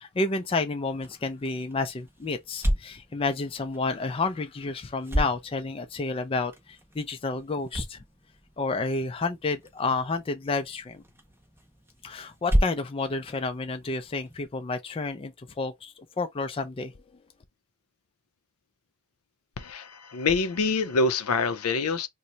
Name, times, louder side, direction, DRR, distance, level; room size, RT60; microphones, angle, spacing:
voice 1, 0.0-8.0 8.6-11.0 12.0-16.9, left 3 dB, 25° left, 0.4 m, -30 dB
sound 1, 0.8-14.4, equal, 10° right, 0.7 m, -34 dB
voice 2, 19.6-22.1, left 3 dB, 80° left, 0.5 m, -26 dB
2.8 x 2.1 x 3.8 m
head